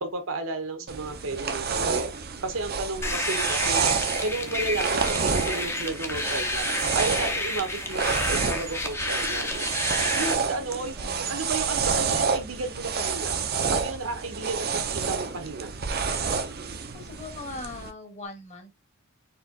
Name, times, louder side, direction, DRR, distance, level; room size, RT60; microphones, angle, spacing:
voice 1, 0.0-2.1 2.4-3.8 4.2-6.7 6.9-9.7 10.1-13.4 13.7-14.7 14.9-15.7, right 3 dB, 65° right, 1.0 m, -32 dB
sound 1, 0.9-17.9, right 5 dB, 45° right, 0.6 m, -29 dB
sound 2, 3.0-10.3, left 2 dB, 10° left, 0.6 m, -30 dB
voice 2, 11.0-11.4 16.9-18.8, left 3 dB, 30° left, 1.2 m, -41 dB
4.4 x 3.0 x 3.6 m
head